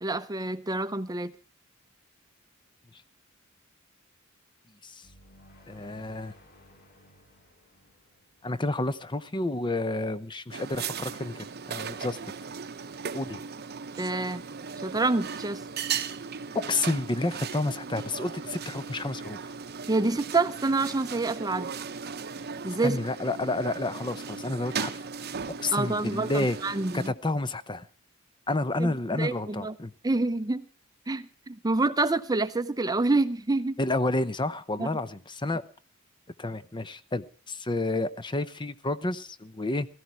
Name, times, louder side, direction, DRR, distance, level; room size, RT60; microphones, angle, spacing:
voice 1, 0.0-1.3 14.0-14.4 14.8-15.6 19.9-21.7 22.6-23.0 25.7-27.1 28.8-28.9 29.2-29.7 30.0-30.7 31.1-33.7 34.8-34.9, right 3 dB, 20° right, 0.7 m, -27 dB
sound 1, 5.0-9.6, left 1 dB, 50° left, 4.2 m, -57 dB
voice 2, 5.7-6.3 8.4-12.2 13.1-13.4 16.5-19.4 22.8-25.0 25.6-26.6 26.9-27.9 28.5-29.9 33.8-35.6 36.4-39.9, left 2 dB, 20° left, 0.8 m, -30 dB
sound 2, 10.5-27.1, right 6 dB, 50° right, 0.8 m, -37 dB
17.0 x 14.5 x 4.6 m
head